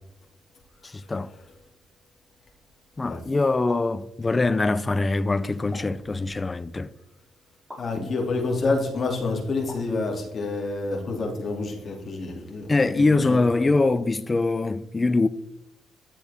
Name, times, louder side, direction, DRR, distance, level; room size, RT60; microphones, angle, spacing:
voice 1, 0.8-1.3 3.0-6.9 8.0-8.1 12.7-15.3, left 3 dB, 15° left, 0.4 m, -23 dB
sound 1, 3.7-4.0 5.7-6.0 7.7-7.9 9.7-10.0, left 1 dB, 5° right, 3.1 m, -42 dB
voice 2, 7.8-12.6 12.9-13.7, left 3 dB, 30° left, 2.6 m, -28 dB
14.0 x 11.0 x 3.5 m
cardioid pair, 175°, 0 cm